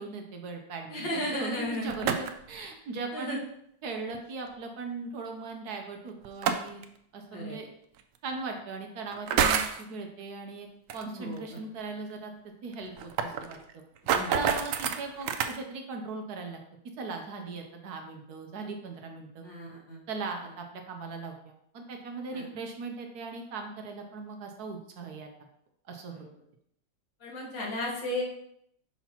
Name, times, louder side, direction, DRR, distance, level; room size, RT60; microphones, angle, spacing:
voice 1, 0.0-3.4 3.8-6.8 7.1-7.7 8.2-10.7 10.9-12.3 12.6-13.8 14.3-16.6 17.0-19.5 20.1-25.3 25.9-26.3, right 3 dB, 65° right, 3 dB, 1.2 m, -39 dB
voice 2, 0.9-1.9 3.1-3.4 7.3-7.6 11.1-11.4 14.1-14.3 19.4-20.0 22.3-22.4 26.1-26.2 27.2-28.2, left 1 dB, 90° left, -3 dB, 2.3 m, -34 dB
sound 1, 1.7-2.5 4.1-4.2 6.2-6.8 8.0-8.1 9.1-9.8 10.9-11.0 11.4-11.5 11.8-11.9 12.1-12.2 12.7-15.6, right 7 dB, 80° right, 0.7 m, -28 dB
5.8 x 5.7 x 2.9 m, 0.71 s
omnidirectional pair, 1.9 m